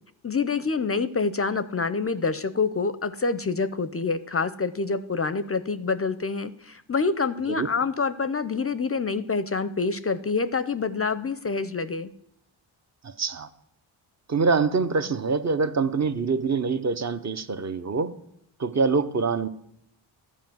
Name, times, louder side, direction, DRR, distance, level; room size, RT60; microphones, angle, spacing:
voice 1, 0.2-12.1, left 4 dB, 30° left, 0.5 m, -27 dB
voice 2, 13.0-13.5 14.3-18.2 18.6-19.5, right 4 dB, 35° right, 0.8 m, -25 dB
11.5 x 5.0 x 7.7 m
supercardioid pair, 50°, 49 cm